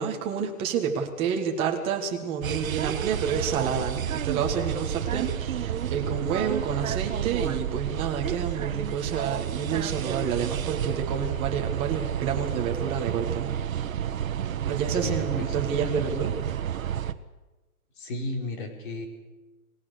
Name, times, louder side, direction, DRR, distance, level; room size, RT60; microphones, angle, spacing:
voice 1, 0.0-13.5 14.7-16.3, right 7 dB, 15° right, 2 dB, 1.6 m, -29 dB
sound 1, 2.4-17.1, right 9 dB, 65° right, 1.3 m, -30 dB
voice 2, 15.0-15.6 18.0-19.1, left 2 dB, 35° left, 3 dB, 4.2 m, -33 dB
28.5 x 19.5 x 6.7 m, 1.2 s
hypercardioid pair, 180°, 43 cm